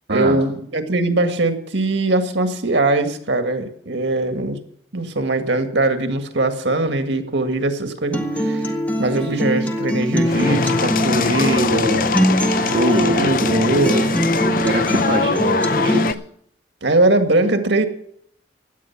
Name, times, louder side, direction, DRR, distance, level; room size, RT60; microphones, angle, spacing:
voice 1, 0.1-4.6 4.9-8.7 9.0-12.2 13.1-14.1 16.8-17.9, right 2 dB, 85° right, 7 dB, 1.9 m, -21 dB
Acoustic guitar, 8.1-16.1, equal, 10° left, 1.7 m, -22 dB
sound 1, 10.2-16.1, left 4 dB, 50° left, 0.5 m, -22 dB
voice 2, 12.7-13.6 14.6-16.2, right 1 dB, 70° right, 1 dB, 1.6 m, -23 dB
17.0 x 11.0 x 5.9 m, 0.68 s
head